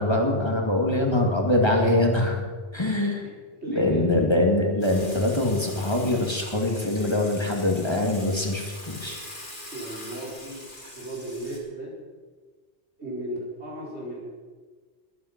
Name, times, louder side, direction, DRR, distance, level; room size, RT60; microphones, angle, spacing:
voice 1, 0.0-2.5 2.7-3.3 3.7-9.2, left 1 dB, 25° left, 1 dB, 2.1 m, -23 dB
voice 2, 3.6-4.1 9.7-10.6 10.9-11.9 13.0-14.3, right 1 dB, 80° right, -5 dB, 5.2 m, -35 dB
Water / Water tap faucet / Sink (filling or washing), 4.8-11.6, left 1 dB, 45° left, 3.5 m, -42 dB
21.5 x 9.4 x 5.9 m, 1.4 s
omnidirectional pair, 1.1 m